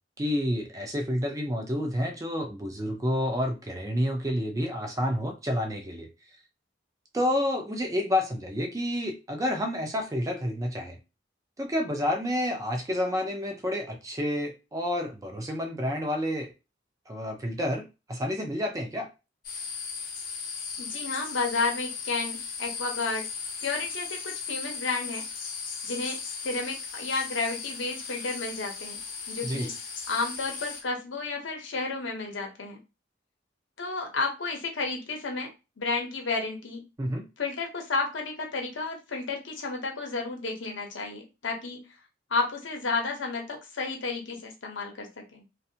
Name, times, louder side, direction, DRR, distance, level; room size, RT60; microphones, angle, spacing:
voice 1, 0.2-6.1 7.1-11.0 11.6-16.5 17.1-19.1 29.4-29.7 37.0-37.2, left 1 dB, 20° right, 3 dB, 0.4 m, -29 dB
sound 1, 19.4-30.8, left 5 dB, 50° left, 0.6 m, -37 dB
voice 2, 20.8-23.3 23.6-25.2 25.8-29.0 29.3-29.7 30.1-32.8 33.8-35.5 35.8-36.8 37.4-41.8 42.3-45.4, left 3 dB, 80° left, 2 dB, 0.8 m, -32 dB
2.6 x 2.2 x 2.7 m, 0.28 s
head